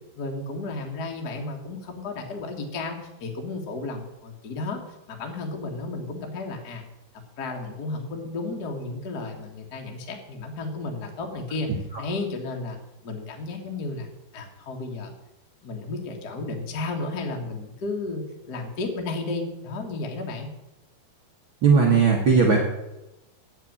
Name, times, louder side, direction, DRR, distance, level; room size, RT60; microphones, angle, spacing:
voice 1, 0.1-4.8 5.1-6.8 7.4-11.7 12.0-15.1 15.6-20.5, left 3 dB, 50° left, 2 dB, 1.2 m, -33 dB
voice 2, 21.6-22.6, right 5 dB, 65° right, 0 dB, 1.2 m, -17 dB
9.0 x 6.8 x 8.7 m, 0.94 s
omnidirectional pair, 4.4 m